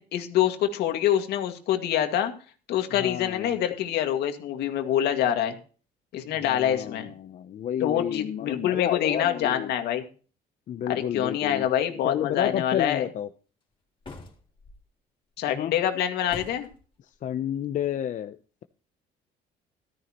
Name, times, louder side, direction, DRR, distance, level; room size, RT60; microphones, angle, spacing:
voice 1, 0.0-2.3 2.7-5.6 6.1-7.1 7.8-10.1 10.9-13.1 15.4-16.7, left 10 dB, 75° left, 6 dB, 2.0 m, -26 dB
voice 2, 3.0-3.5 6.4-9.7 10.7-11.7 12.0-13.3 15.5-15.7 17.2-18.6, left 10 dB, 50° left, 9 dB, 0.6 m, -31 dB
sound 1, 14.0-14.8 16.3-16.8, left 3 dB, 30° left, 3.6 m, -43 dB
14.0 x 13.5 x 3.0 m, 0.37 s
cardioid pair, 110°, 17 cm